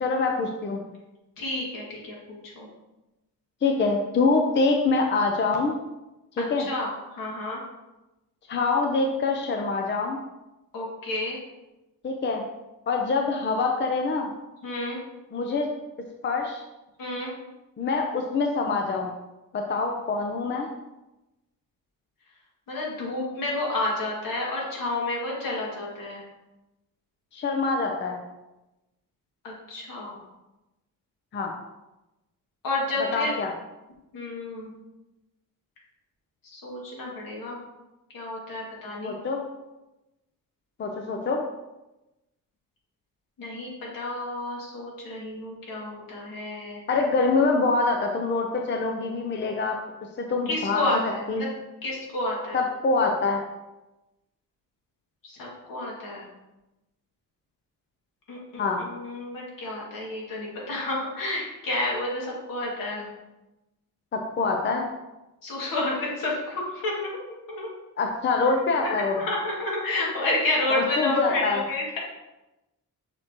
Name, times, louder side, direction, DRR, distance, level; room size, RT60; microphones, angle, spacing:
voice 1, 0.0-0.8 3.6-5.8 6.4-6.7 8.5-10.2 12.0-12.4 12.9-14.3 15.3-15.7 16.2-16.6 17.8-19.1 19.5-20.7 27.3-28.2 31.3-31.5 33.1-33.5 39.0-39.4 40.8-41.4 46.9-49.8 50.2-51.0 51.3-51.4 52.5-53.4 58.6-58.8 64.1-64.9 68.0-69.2 70.7-71.6, left 3 dB, 35° left, 3 dB, 0.6 m, -25 dB
voice 2, 1.4-2.7 6.4-7.6 10.7-11.4 14.6-15.0 17.0-17.3 22.7-26.3 29.4-30.2 32.6-33.3 34.1-34.7 36.4-37.6 38.1-39.2 43.4-46.8 50.5-51.5 51.8-52.6 55.2-56.3 58.3-63.1 65.4-67.1 67.5-67.7 68.8-72.0, left 2 dB, 75° left, -3 dB, 2.3 m, -30 dB
6.5 x 5.9 x 2.9 m, 0.99 s
wide cardioid pair, 170°, 34 cm